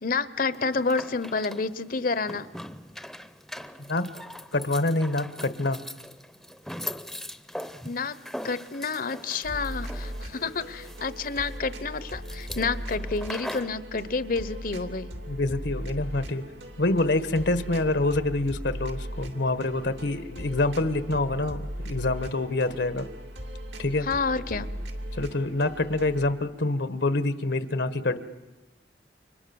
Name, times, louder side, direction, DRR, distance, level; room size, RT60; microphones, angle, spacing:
voice 1, 0.0-2.5 7.8-8.2 8.4-15.1 17.2-17.3 24.0-24.7, left 4 dB, 50° left, 15 dB, 1.0 m, -29 dB
sound 1, 0.5-13.8, left 1 dB, ahead, 0.8 m, -41 dB
voice 2, 4.5-5.8 15.3-16.4 16.8-23.0 23.8-24.1 25.2-28.2, left 2 dB, 75° left, 12 dB, 1.4 m, -26 dB
sound 2, 9.4-26.3, equal, 80° right, 2.6 m, -38 dB
30.0 x 25.5 x 7.1 m, 1.1 s
head